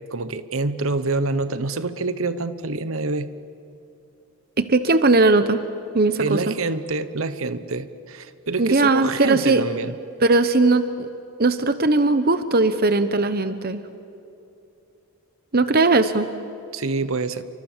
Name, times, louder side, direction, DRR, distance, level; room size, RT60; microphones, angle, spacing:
voice 1, 0.1-3.3 6.2-9.9 16.7-17.4, right 3 dB, 65° right, 13 dB, 1.0 m, -26 dB
voice 2, 4.6-5.6 5.9-6.6 8.6-9.6 10.2-11.1 11.4-13.8 15.5-16.3, right 3 dB, 45° right, 11 dB, 0.9 m, -19 dB
29.0 x 24.5 x 7.4 m, 2.7 s
head